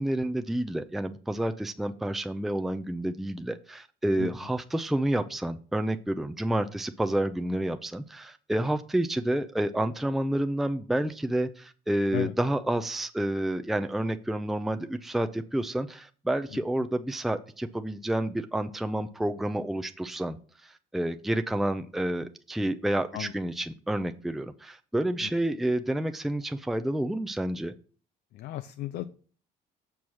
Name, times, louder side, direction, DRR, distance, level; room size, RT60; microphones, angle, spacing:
voice 1, 0.0-20.4 20.6-27.7, right 1 dB, ahead, 8 dB, 0.5 m, -29 dB
voice 2, 28.3-29.1, left 15 dB, 70° left, 9 dB, 0.5 m, -34 dB
7.1 x 4.6 x 6.2 m, 0.41 s
cardioid pair, 110°, 17 cm